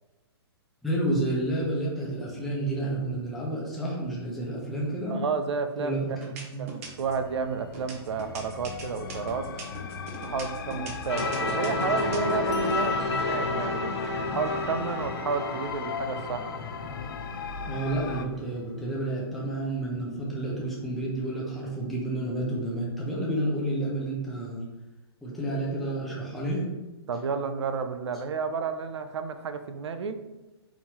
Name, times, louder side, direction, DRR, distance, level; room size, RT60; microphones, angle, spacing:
voice 1, 0.8-5.2 5.8-6.1 6.5-6.6 17.7-24.6 25.2-26.6, right 1 dB, ahead, -6 dB, 0.6 m, -30 dB
voice 2, 5.1-6.0 6.6-9.5 10.3-13.9 14.3-16.5 27.1-30.2, right 5 dB, 90° right, 9 dB, 0.5 m, -31 dB
sound 1, 5.3-5.7 6.2-7.2 7.7-12.7, right 4 dB, 35° right, 0.7 m, -41 dB
sound 2, 6.8-18.3, left 6 dB, 55° left, 0.4 m, -39 dB
sound 3, 11.1-17.8, left 2 dB, 85° left, 1.3 m, -30 dB
4.6 x 3.6 x 2.9 m, 1.1 s
hypercardioid pair, 170°, 14 cm